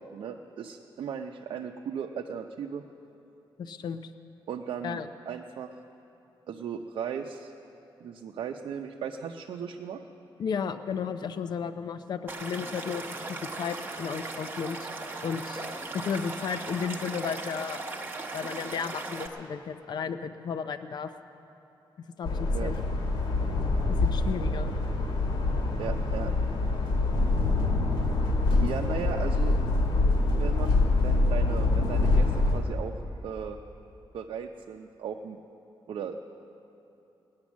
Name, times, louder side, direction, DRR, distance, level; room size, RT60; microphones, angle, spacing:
voice 1, 0.0-2.8 4.5-5.0 5.3-5.7 6.5-7.5 8.0-10.0 22.5-22.7 25.8-26.3 26.6-26.7 27.3-27.4 28.6-29.6 30.3-32.9 33.2-33.6 34.1-35.4 35.9-36.2, right 7 dB, 85° right, 2 dB, 0.7 m, -36 dB
voice 2, 3.6-4.0 4.8-5.1 10.4-13.0 13.3-14.9 15.2-15.6 15.9-17.8 18.3-21.1 22.2-22.8 23.9-24.7, left 6 dB, 55° left, 10 dB, 0.6 m, -33 dB
Stream / Liquid, 12.3-19.3, right 3 dB, 25° right, 1.1 m, -38 dB
sound 1, 22.2-32.6, left 2 dB, 75° left, 2.1 m, -25 dB
18.5 x 10.5 x 7.3 m, 2.9 s
wide cardioid pair, 175°, 9 cm